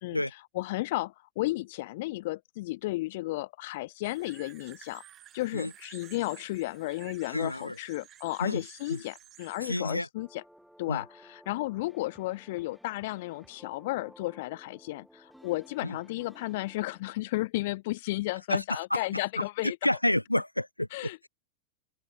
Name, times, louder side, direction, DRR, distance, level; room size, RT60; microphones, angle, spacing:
voice 1, 0.0-5.0 5.3-10.4 10.8-19.8 20.9-21.3, left 19 dB, 50° left, 0.7 m, -33 dB
sound 1, 4.0-9.8, right 11 dB, 30° right, 2.4 m, -53 dB
voice 2, 7.3-7.7 8.4-8.6 8.9-9.0 9.6-10.1 10.9-11.0 15.8-16.0 18.5-21.3, left 1 dB, 85° left, 1.2 m, -30 dB
sound 2, 10.2-17.0, equal, ahead, 2.3 m, -56 dB
open air
figure-of-eight pair, 90°, 0 cm